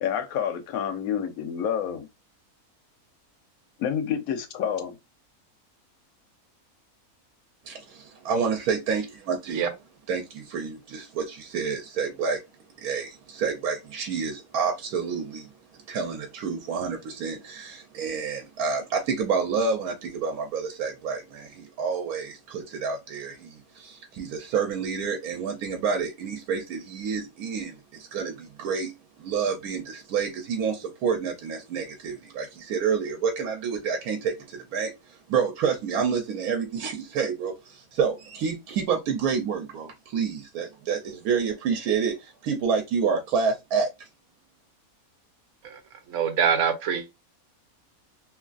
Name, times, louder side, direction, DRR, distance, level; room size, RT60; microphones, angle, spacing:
voice 1, 0.0-2.1 3.8-5.0, left 8 dB, 75° left, 1.1 m, -28 dB
voice 2, 7.7-9.7 10.1-12.4 12.8-44.1, right 6 dB, 90° right, 1.1 m, -29 dB
voice 3, 46.1-47.3, right 7 dB, 65° right, 1.0 m, -25 dB
3.1 x 2.4 x 2.3 m
omnidirectional pair, 1.5 m